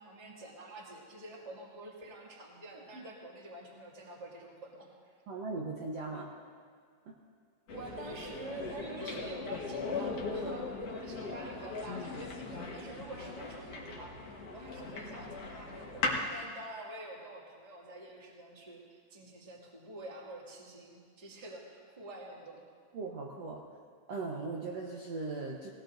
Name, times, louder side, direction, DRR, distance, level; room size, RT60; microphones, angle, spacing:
voice 1, 0.0-5.1 7.7-22.6, right 2 dB, 20° right, -4 dB, 1.1 m, -47 dB
voice 2, 5.3-6.3 22.9-23.6 24.1-25.7, right 3 dB, 90° right, -2 dB, 1.4 m, -38 dB
sound 1, 7.7-16.3, left 3 dB, 55° left, 1.7 m, -39 dB
20.5 x 19.0 x 2.7 m, 2.1 s
omnidirectional pair, 4.7 m